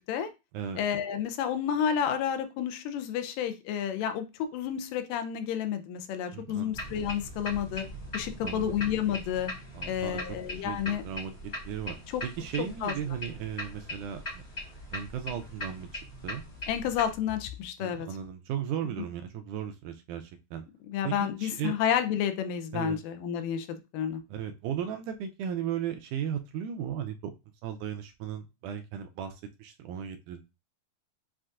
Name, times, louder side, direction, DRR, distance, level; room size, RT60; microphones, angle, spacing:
voice 1, 0.8-7.9 8.1-9.5 9.9-11.0 12.1-12.2 12.8-12.9 16.7-18.1 19.0-19.1 20.9-24.2, left 9 dB, 85° left, 8 dB, 2.3 m, -30 dB
voice 2, 6.3-6.8 8.4-8.8 9.7-10.4 10.6-11.3 11.7-12.0 12.2-14.4 14.9-16.4 17.8-20.6 21.0-21.8 22.7-23.0 24.3-27.3 27.6-30.4, right 9 dB, 80° right, 6 dB, 1.9 m, -36 dB
sound 1, 6.7-17.1, left 1 dB, 30° left, 1.2 m, -40 dB
7.4 x 2.6 x 2.4 m, 0.26 s
omnidirectional pair, 3.8 m